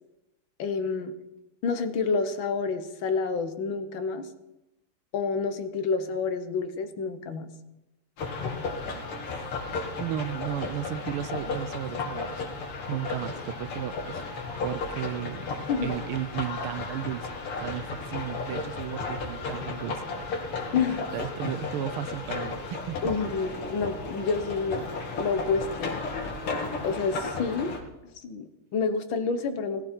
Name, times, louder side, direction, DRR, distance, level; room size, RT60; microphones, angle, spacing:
voice 1, 0.6-1.1 1.6-4.3 5.1-7.5 15.7-15.9 20.7-21.1 23.0-24.9 25.2-26.0 26.8-27.7 28.2-29.8, left 5 dB, 65° left, 9 dB, 1.9 m, -28 dB
sound 1, 8.2-27.8, left 3 dB, 85° left, 3.0 m, -34 dB
voice 2, 10.0-12.4 12.9-14.2 14.6-15.4 15.8-17.3 17.6-20.3 21.1-23.2, right 12 dB, 75° right, 14 dB, 1.6 m, -34 dB
17.5 x 16.0 x 4.5 m, 0.99 s
omnidirectional pair, 2.4 m